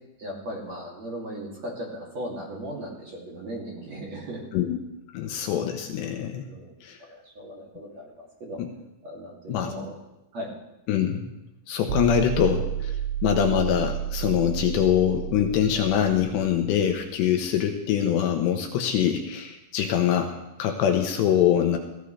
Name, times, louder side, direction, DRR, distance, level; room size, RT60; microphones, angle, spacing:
voice 1, 0.2-4.5 6.5-6.7 7.0-8.6 9.0-10.0 10.3-10.5, equal, 40° right, -3 dB, 3.5 m, -37 dB
voice 2, 5.1-6.5 6.8-7.0 8.6-8.7 9.5-9.7 10.9-11.3 11.7-13.0 13.2-21.8, left 9 dB, 75° left, 4 dB, 3.0 m, -24 dB
sound 1, 11.9-16.9, right 10 dB, 85° right, 1.9 m, -31 dB
18.5 x 16.5 x 3.4 m, 0.92 s
omnidirectional pair, 5.4 m